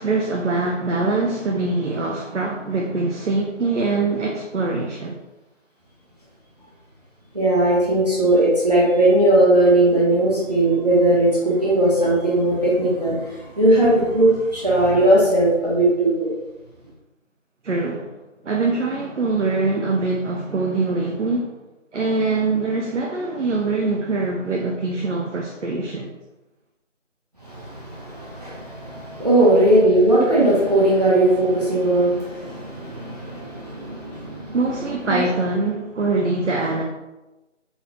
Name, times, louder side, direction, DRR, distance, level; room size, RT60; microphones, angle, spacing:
voice 1, 0.0-5.2 17.6-18.1 18.4-21.5 21.9-26.1 34.5-36.8, right 3 dB, 65° right, 1 dB, 0.6 m, -23 dB
voice 2, 7.3-16.3 27.4-34.6 35.1-35.2, right 1 dB, 30° right, -7 dB, 0.9 m, -18 dB
4.0 x 3.7 x 2.9 m, 1.0 s
figure-of-eight pair, 175°, 38 cm